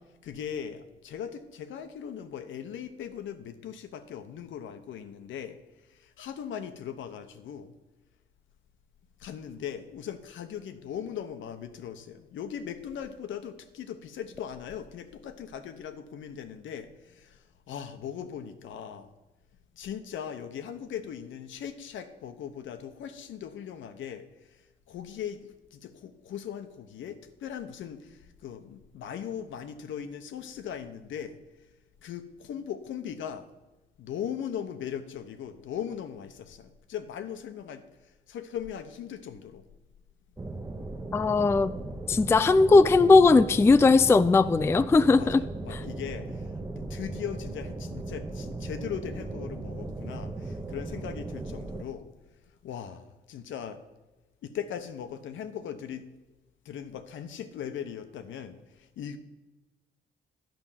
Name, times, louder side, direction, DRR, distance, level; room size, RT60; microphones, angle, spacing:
voice 1, 0.2-5.6 5.9-7.7 9.2-19.1 19.7-31.4 32.0-33.5 34.0-39.7 45.1-52.1 52.6-53.8 54.4-56.0 56.6-59.2, left 8 dB, 75° left, 9 dB, 0.9 m, -39 dB
sound 1, 40.4-51.8, right 2 dB, 15° right, 0.8 m, -37 dB
voice 2, 41.1-41.8 42.1-45.4 45.7-45.8, left 3 dB, 15° left, 13 dB, 0.3 m, -19 dB
10.5 x 5.3 x 7.4 m, 1.1 s
cardioid pair, 90°, 20 cm